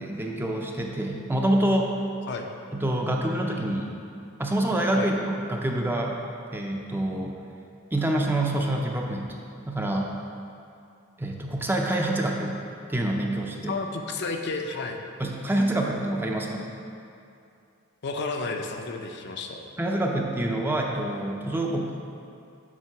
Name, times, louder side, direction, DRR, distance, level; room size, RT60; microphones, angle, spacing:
voice 1, 0.0-1.9 2.7-3.9 4.4-6.2 6.5-7.4 7.9-9.3 9.7-10.1 11.2-12.6 12.9-13.8 15.2-16.7 19.8-21.9, right 1 dB, 10° right, 0 dB, 0.4 m, -26 dB
voice 2, 13.7-15.0 18.0-19.6, left 3 dB, 55° left, 4 dB, 0.5 m, -31 dB
7.3 x 3.4 x 5.8 m, 2.5 s
head